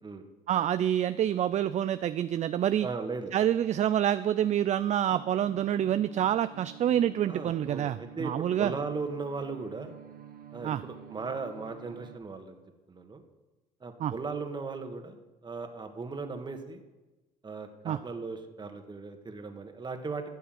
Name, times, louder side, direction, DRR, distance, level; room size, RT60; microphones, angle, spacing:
voice 1, 0.5-2.9 3.3-8.7 10.6-10.8 14.0-14.1 17.8-18.0, right 10 dB, 50° right, 13 dB, 0.4 m, -27 dB
voice 2, 2.8-3.3 7.3-9.9 10.5-12.6 12.9-13.2 13.8-16.8 17.4-20.2, right 4 dB, 30° right, 6 dB, 1.7 m, -37 dB
sound 1, 5.1-12.2, right 10 dB, 65° right, 1.1 m, -48 dB
13.0 x 6.8 x 7.8 m, 1.1 s
cardioid pair, 85°, 16 cm